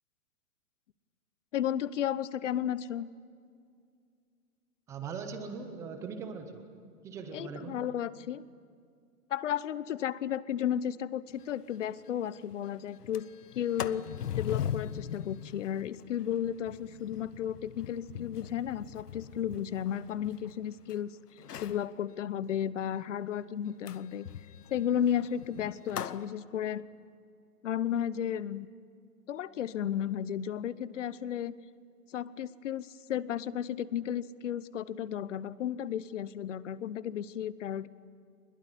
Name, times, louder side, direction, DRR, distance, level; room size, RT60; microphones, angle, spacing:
voice 1, 1.5-3.1 7.3-8.4 9.3-13.3 13.5-14.0 14.4-21.1 21.6-24.3 24.7-26.8 27.6-28.7 29.3-31.5 32.1-37.9, left 10 dB, 50° left, 18 dB, 0.9 m, -33 dB
voice 2, 4.9-6.6 7.0-7.8, right 5 dB, 5° right, 7 dB, 0.6 m, -40 dB
Sliding door, 11.4-11.5 11.8-11.9 12.3-12.6 12.9-20.9 21.4-21.9 23.9-26.2, left 9 dB, 75° left, 1.1 m, -40 dB
22.5 x 21.5 x 9.9 m, 2.3 s
hypercardioid pair, 150°, 47 cm